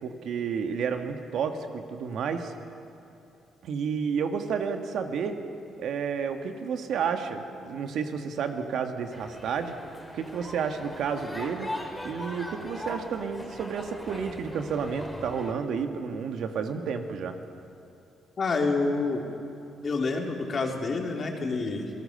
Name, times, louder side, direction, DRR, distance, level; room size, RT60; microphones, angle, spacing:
voice 1, 0.0-2.5 3.6-5.4 5.8-9.7 10.1-11.7 12.0-17.4, right 6 dB, 70° right, 6 dB, 1.7 m, -31 dB
sound 1, 9.1-15.5, left 1 dB, 5° left, 3.6 m, -40 dB
voice 2, 18.4-19.3 19.8-21.9, left 3 dB, 45° left, 1 dB, 3.3 m, -28 dB
27.5 x 18.0 x 6.7 m, 2.8 s
cardioid pair, 90°, 0 cm